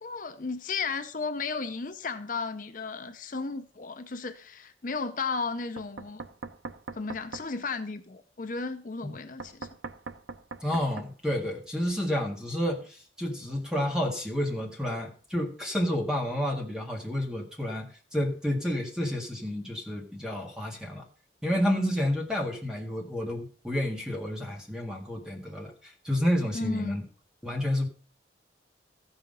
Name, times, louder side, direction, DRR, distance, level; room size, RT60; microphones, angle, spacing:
voice 1, 0.0-6.2 6.9-9.7 26.5-27.0, left 4 dB, 45° left, 0.6 m, -34 dB
Knock, 5.8-7.5 9.4-11.1, right 4 dB, 80° right, 0.8 m, -41 dB
voice 2, 10.6-17.9 18.1-21.0 21.4-27.0 27.4-27.9, left 1 dB, 5° right, 1.7 m, -30 dB
14.0 x 5.7 x 5.3 m
head